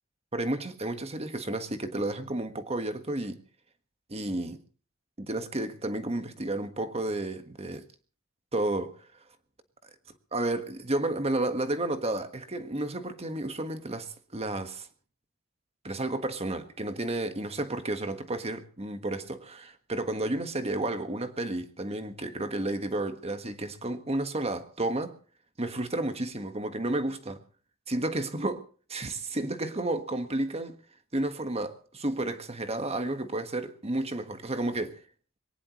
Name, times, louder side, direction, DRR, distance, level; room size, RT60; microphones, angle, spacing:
voice 1, 0.3-3.4 4.1-4.6 5.2-7.9 8.5-9.1 10.3-14.9 15.8-25.2 25.6-27.4 27.9-28.6 28.9-30.8 31.1-35.0, right 2 dB, 30° right, 1.5 m, -32 dB
22.0 x 19.0 x 3.1 m
head